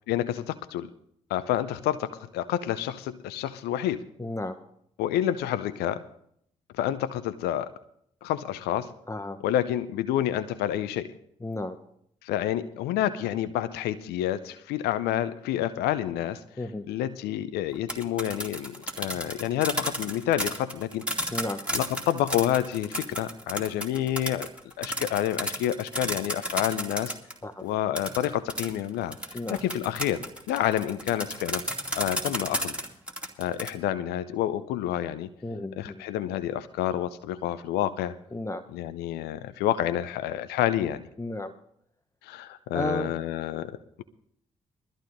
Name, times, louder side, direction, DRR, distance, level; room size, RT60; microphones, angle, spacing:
voice 1, 0.1-0.9 1.3-4.1 5.0-6.0 6.8-7.7 8.2-8.9 9.4-11.1 12.2-16.4 16.9-21.3 21.7-24.5 24.8-27.2 27.6-29.2 29.5-31.6 31.9-32.7 33.4-35.3 35.8-38.1 38.7-41.0 42.2-43.7, left 12 dB, 65° left, 12 dB, 0.5 m, -29 dB
voice 2, 4.2-4.6 9.1-9.4 11.4-11.8 16.6-16.8 21.3-21.6 27.4-27.6 29.3-29.6 35.4-36.0 38.3-38.6 41.2-41.5 42.7-43.1, left 1 dB, 15° left, 7 dB, 0.8 m, -33 dB
sound 1, 17.7-27.4 27.9-33.7, equal, 5° right, 2.5 m, -33 dB
22.0 x 14.0 x 2.6 m, 0.69 s
figure-of-eight pair, 40°, 18 cm